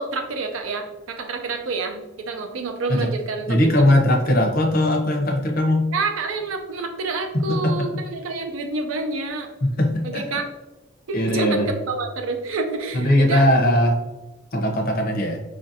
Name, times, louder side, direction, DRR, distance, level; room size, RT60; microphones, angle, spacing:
voice 1, 0.0-3.5 5.9-9.5 10.0-10.4 11.1-13.5, right 3 dB, 80° right, 5 dB, 0.5 m, -28 dB
voice 2, 3.5-5.9 7.3-8.0 9.6-10.2 11.1-11.7 12.9-14.0 14.5-15.4, left 1 dB, 45° left, 2 dB, 0.6 m, -19 dB
4.9 x 2.5 x 2.6 m, 1.1 s
head